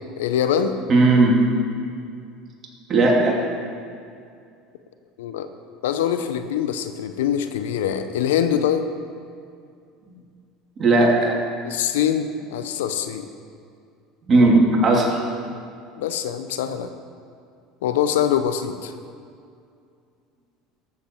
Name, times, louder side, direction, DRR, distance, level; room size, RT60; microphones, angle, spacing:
voice 1, 0.2-0.8 5.2-5.5 5.8-8.9 11.7-13.3 16.0-16.9 17.8-18.9, left 9 dB, 85° left, 10 dB, 0.6 m, -23 dB
voice 2, 0.9-1.4 2.9-3.4 10.8-11.3 14.3-15.2, right 2 dB, 35° right, -2 dB, 2.8 m, -16 dB
14.0 x 7.3 x 4.6 m, 2.3 s
supercardioid pair, 95°, 0 cm